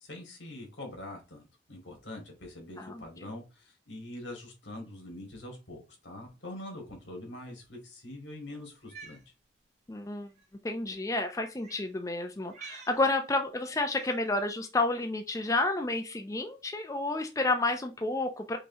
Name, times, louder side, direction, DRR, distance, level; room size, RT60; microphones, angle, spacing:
voice 1, 0.0-9.2, left 1 dB, 85° left, 1 dB, 2.1 m, -44 dB
voice 2, 2.8-3.3 9.9-10.3 10.6-18.6, left 2 dB, 15° left, 5 dB, 0.4 m, -30 dB
Cat, 8.7-9.2 10.3-10.4 11.6-11.9 12.5-13.0 13.9-14.3, right 5 dB, 40° right, 1.2 m, -48 dB
5.4 x 3.1 x 2.7 m, 0.28 s
head